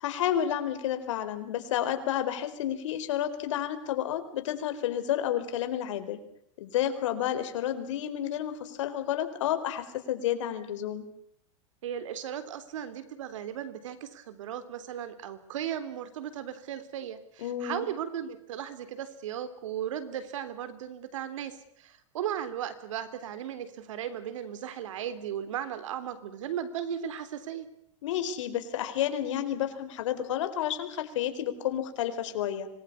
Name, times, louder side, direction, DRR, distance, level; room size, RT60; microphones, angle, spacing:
voice 1, 0.0-6.2 6.6-11.0 17.4-17.8 28.0-32.7, left 10 dB, 75° left, 9 dB, 4.4 m, -30 dB
voice 2, 11.8-27.7, right 9 dB, 85° right, 13 dB, 3.6 m, -36 dB
26.0 x 21.0 x 8.6 m, 0.69 s
supercardioid pair, 160°, 16 cm